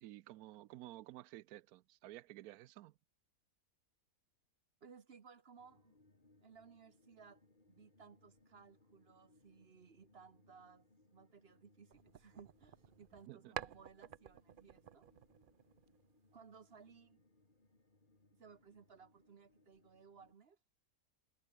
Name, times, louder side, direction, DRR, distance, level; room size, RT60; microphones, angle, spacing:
voice 1, 0.0-3.0 13.3-13.5, right 15 dB, 85° right, 1.1 m, -53 dB
voice 2, 4.8-6.0 6.4-15.1 16.3-17.2 18.3-20.6, right 6 dB, 45° right, 1.2 m, -61 dB
sound 1, 5.6-20.3, left 2 dB, 35° left, 3.5 m, -71 dB
sound 2, 11.9-13.3 13.5-16.2, right 10 dB, 60° right, 0.5 m, -51 dB
omnidirectional pair, 1.5 m